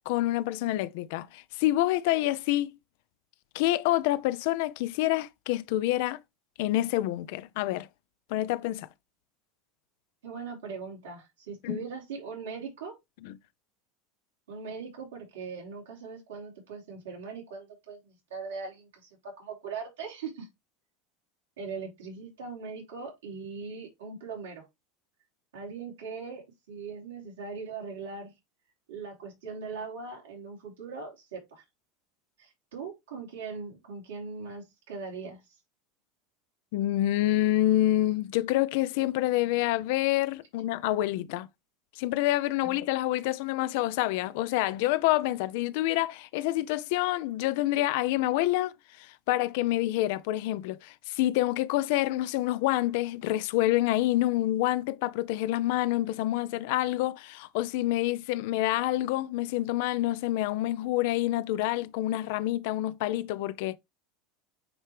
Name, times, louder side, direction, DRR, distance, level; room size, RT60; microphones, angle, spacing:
voice 1, 0.1-2.7 3.5-6.2 6.6-7.9 8.3-8.9 11.6-11.8 13.2-13.3 36.7-41.5 42.0-63.8, left 15 dB, 70° left, 0.5 m, -27 dB
voice 2, 10.2-12.9 14.5-20.5 21.6-24.6 25.5-28.3 28.9-31.6 32.4-35.4 42.6-42.8, right 5 dB, 85° right, 3.7 m, -40 dB
8.8 x 3.2 x 3.4 m
hypercardioid pair, 100°, 0 cm